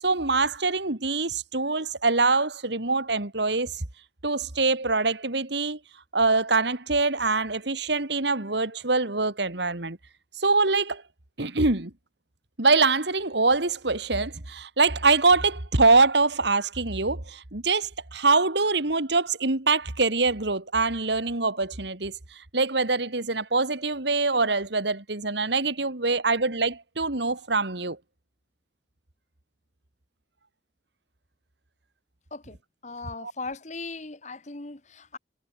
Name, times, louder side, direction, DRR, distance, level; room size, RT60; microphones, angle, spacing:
voice 1, 0.0-3.8 4.2-5.8 6.1-10.0 10.4-11.0 11.4-11.9 12.6-28.0 33.2-33.3, right 3 dB, 65° right, 2.3 m, -24 dB
voice 2, 32.8-35.2, left 3 dB, 40° left, 1.4 m, -38 dB
head